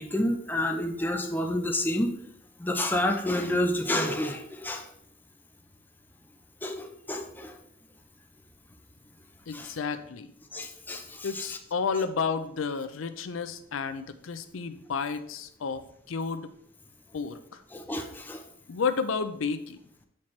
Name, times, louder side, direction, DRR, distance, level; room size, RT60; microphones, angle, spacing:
voice 1, 0.0-2.1 2.6-4.8 6.6-7.6 9.5-9.7 10.5-11.6 17.7-18.4, left 1 dB, 10° left, 4 dB, 0.5 m, -29 dB
voice 2, 9.5-10.3 11.2-15.8 16.1-16.5 17.1-17.4 18.7-19.8, left 5 dB, 85° left, 10 dB, 0.5 m, -31 dB
7.4 x 4.3 x 3.2 m, 0.70 s
head